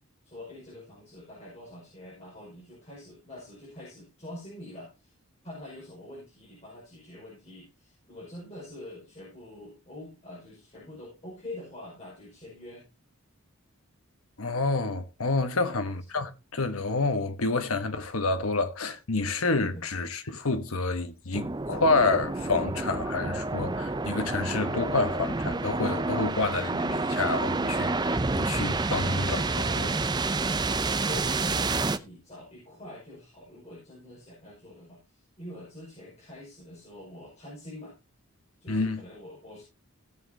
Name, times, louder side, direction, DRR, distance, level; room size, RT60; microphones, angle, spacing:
voice 1, 0.2-5.1 5.4-12.8 15.5-15.9 19.6-19.8 30.8-38.0 38.6-39.6, left 1 dB, 30° left, 5.5 m, -45 dB
voice 2, 14.4-30.6 38.7-39.0, left 3 dB, 80° left, 1.3 m, -29 dB
sound 1, 21.3-32.0, right 3 dB, 20° right, 0.5 m, -29 dB
16.5 x 7.6 x 2.8 m
head